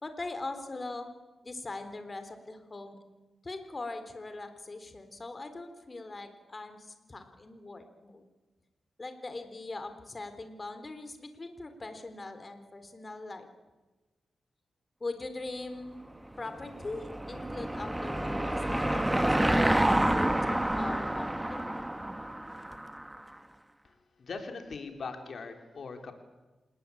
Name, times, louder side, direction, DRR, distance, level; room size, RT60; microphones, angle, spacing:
voice 1, 0.0-1.1 1.4-3.0 3.4-8.2 9.0-13.5 15.0-16.0 16.4-21.7, left 2 dB, 35° left, 8 dB, 3.9 m, -41 dB
Car passing by / Engine, 16.4-23.2, right 1 dB, 15° right, 1.6 m, -29 dB
voice 2, 23.8-26.1, left 4 dB, 65° left, 5 dB, 4.1 m, -41 dB
27.5 x 20.0 x 8.8 m, 1.2 s
cardioid pair, 60°, 0 cm